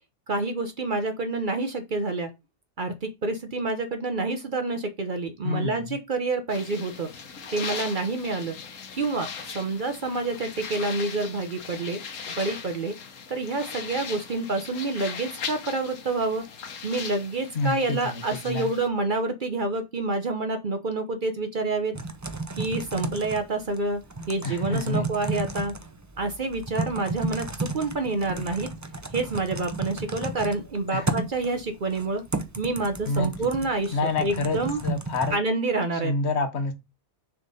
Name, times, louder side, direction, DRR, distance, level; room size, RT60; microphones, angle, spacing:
voice 1, 0.3-2.3 2.8-7.1 7.5-8.5 9.0-12.0 12.4-12.9 13.3-16.5 16.8-21.9 22.6-24.0 24.3-25.7 26.2-28.7 29.1-32.2 32.6-34.8 35.3-36.1, right 3 dB, 45° right, 0.8 m, -28 dB
voice 2, 5.4-6.0 17.5-18.7 24.4-25.1 30.9-31.1 33.1-33.3 33.9-35.4 36.0-36.7, left 3 dB, 60° left, 1.2 m, -28 dB
sound 1, 6.5-18.9, left 6 dB, 85° left, 1.3 m, -39 dB
Typing, 21.9-35.3, right 2 dB, 20° right, 0.5 m, -33 dB
6.7 x 3.7 x 4.0 m
omnidirectional pair, 1.3 m